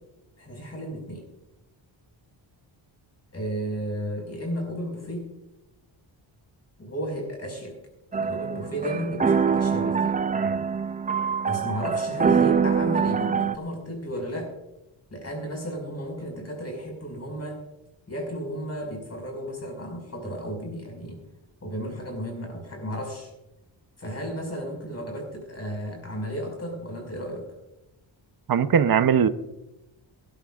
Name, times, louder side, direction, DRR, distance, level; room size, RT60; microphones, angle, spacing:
voice 1, 0.4-1.2 3.3-5.3 6.8-7.8 8.1-10.2 11.4-14.5 15.1-17.6 18.1-21.2 21.6-23.3 24.0-27.5, equal, 30° left, 2 dB, 5.6 m, -33 dB
sound 1, 8.1-13.6, right 6 dB, 20° right, 0.4 m, -24 dB
voice 2, 28.5-29.3, right 7 dB, 50° right, 11 dB, 0.9 m, -21 dB
21.5 x 13.0 x 2.5 m, 0.94 s
cardioid pair, 105°, 47 cm